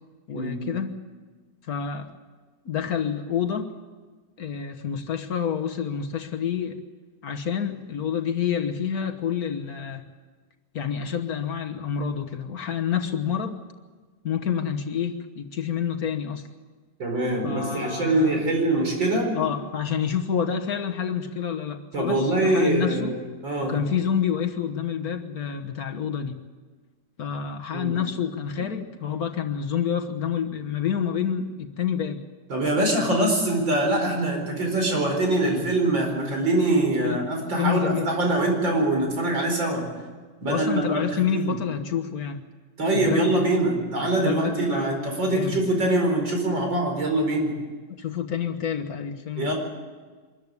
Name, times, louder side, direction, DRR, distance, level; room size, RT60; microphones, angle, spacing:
voice 1, 0.3-1.0 1.7-2.1 2.6-3.7 4.4-6.8 7.2-10.0 10.7-13.6 14.2-16.4 17.4-18.4 19.3-23.1 23.6-26.4 27.2-32.2 37.0-37.3 37.6-38.5 40.5-42.4 42.9-43.4 44.2-45.8 47.9-49.5, left 8 dB, 55° left, 6 dB, 1.6 m, -28 dB
voice 2, 17.0-19.3 21.9-23.2 23.4-23.8 27.7-27.9 28.6-28.7 32.5-39.9 40.4-41.5 42.8-47.5 49.4-49.5, right 2 dB, 80° right, 2 dB, 5.5 m, -23 dB
24.5 x 14.0 x 9.7 m, 1.4 s
omnidirectional pair, 2.0 m